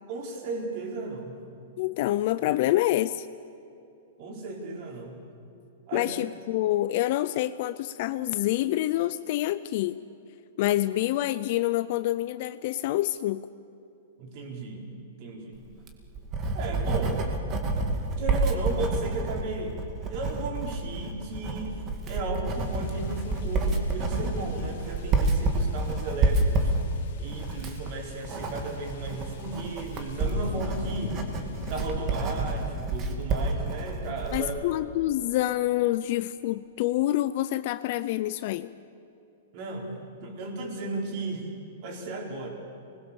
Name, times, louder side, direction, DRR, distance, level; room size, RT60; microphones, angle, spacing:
voice 1, 0.1-1.5 4.2-5.1 5.9-6.1 14.2-15.6 16.5-17.4 18.2-19.8 20.1-21.8 22.1-26.7 27.2-31.2 31.7-34.5 39.5-41.5 41.8-42.5, right 2 dB, 40° right, 1 dB, 4.4 m, -35 dB
voice 2, 1.8-3.3 5.9-10.0 10.6-13.4 34.3-38.7, left 15 dB, 40° left, 14 dB, 0.5 m, -27 dB
Writing, 15.7-34.5, right 2 dB, 20° right, 2.0 m, -29 dB
sound 1, 22.5-32.7, left 6 dB, 60° left, 2.4 m, -43 dB
26.0 x 20.5 x 7.1 m, 2.8 s
hypercardioid pair, 165°, 0 cm